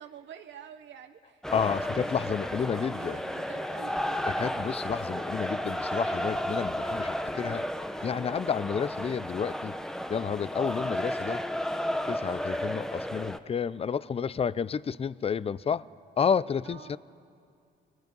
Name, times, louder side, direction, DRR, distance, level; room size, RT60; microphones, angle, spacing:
voice 1, 0.0-4.2 16.6-17.0, right 9 dB, 70° right, 6 dB, 1.0 m, -47 dB
sound 1, 1.4-13.4, equal, 5° left, 0.9 m, -33 dB
voice 2, 1.5-3.2 4.3-7.6 8.0-9.7 10.1-11.4 12.1-15.8 16.2-17.0, left 7 dB, 30° left, 19 dB, 0.5 m, -30 dB
29.5 x 22.5 x 5.4 m, 2.4 s
cardioid pair, 90°, 20 cm